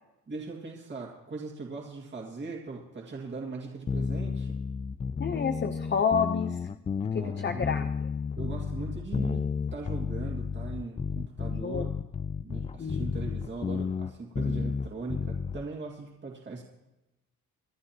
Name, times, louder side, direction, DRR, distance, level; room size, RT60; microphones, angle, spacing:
voice 1, 0.3-4.6 7.2-7.8 8.4-11.9 12.4-16.6, right 3 dB, 35° right, -1 dB, 2.1 m, -40 dB
sound 1, 3.9-15.7, left 6 dB, 20° left, 0.3 m, -32 dB
voice 2, 5.2-6.6 7.1-8.1 11.6-11.9 12.8-13.4, left 6 dB, 35° left, 7 dB, 0.8 m, -30 dB
26.5 x 11.0 x 2.9 m, 0.98 s
cardioid pair, 90°, 30 cm